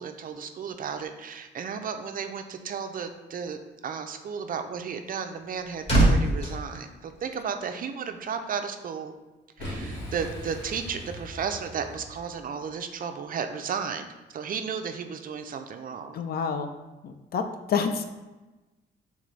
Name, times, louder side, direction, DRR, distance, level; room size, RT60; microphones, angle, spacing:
voice 1, 0.0-9.1 9.6-14.1 14.3-16.2, right 6 dB, 45° right, 7 dB, 0.4 m, -34 dB
sound 1, 5.4-7.8 8.1-8.4, right 1 dB, 30° left, 1.4 m, -25 dB
Boom, 9.6-12.6, equal, 70° left, 1.3 m, -39 dB
voice 2, 16.1-16.7 17.0-18.0, left 6 dB, 50° left, 7 dB, 0.4 m, -28 dB
3.8 x 3.5 x 3.2 m, 1.1 s
cardioid pair, 90°, 20 cm